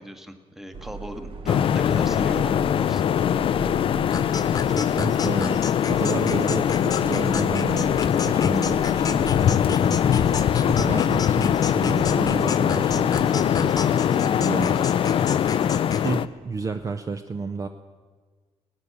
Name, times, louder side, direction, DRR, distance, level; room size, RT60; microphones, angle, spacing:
voice 1, 0.0-3.3, equal, 5° right, 8 dB, 1.1 m, -38 dB
Subway metro underground, 0.7-16.9, right 4 dB, 55° right, 0.9 m, -41 dB
sound 1, 1.5-16.3, left 9 dB, 55° left, 0.4 m, -22 dB
sound 2, 4.1-16.1, left 4 dB, 35° left, 1.1 m, -34 dB
voice 2, 4.7-5.6 5.9-10.0 10.6-13.8 14.2-14.9 16.0-17.7, right 4 dB, 30° right, 8 dB, 0.6 m, -31 dB
18.5 x 9.6 x 7.0 m, 1.5 s
wide cardioid pair, 140°, 11 cm